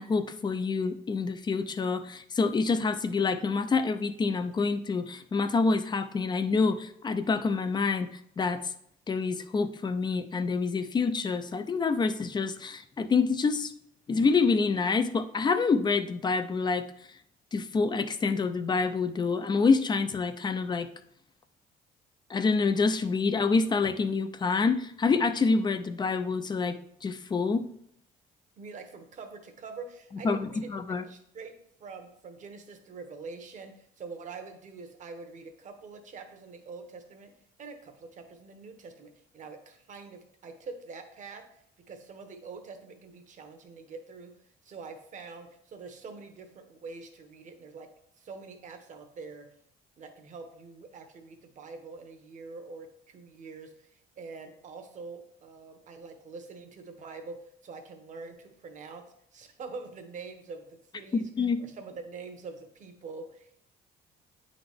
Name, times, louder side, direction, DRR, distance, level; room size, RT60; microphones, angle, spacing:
voice 1, 0.0-8.7 9.1-13.7 14.1-16.9 17.5-20.9 22.3-27.7 30.2-30.4 30.7-31.0 61.1-61.6, left 4 dB, 25° left, 10 dB, 0.5 m, -27 dB
voice 2, 28.6-30.7 31.0-31.5 31.8-37.3 37.6-41.5 41.8-47.9 48.2-49.5 50.0-59.0 59.3-61.3 61.6-63.7, right 4 dB, 45° right, 6 dB, 1.1 m, -45 dB
8.6 x 4.0 x 3.5 m, 0.71 s
cardioid pair, 110°, 17 cm